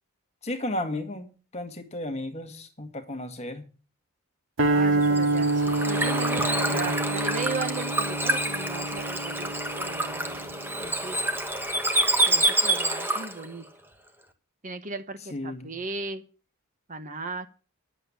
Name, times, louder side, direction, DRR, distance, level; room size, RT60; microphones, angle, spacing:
voice 1, 0.4-3.6 6.7-7.0 15.3-15.7, left 1 dB, 30° left, 1.9 m, -34 dB
sound 1, 4.6-10.9, right 2 dB, 65° right, 2.0 m, -27 dB
voice 2, 4.7-11.2 12.3-13.7 14.6-16.2 16.9-17.6, right 3 dB, 35° right, 1.1 m, -37 dB
Bird / Water, 5.0-13.5, right 1 dB, 10° right, 1.3 m, -27 dB
11.0 x 8.1 x 8.5 m
head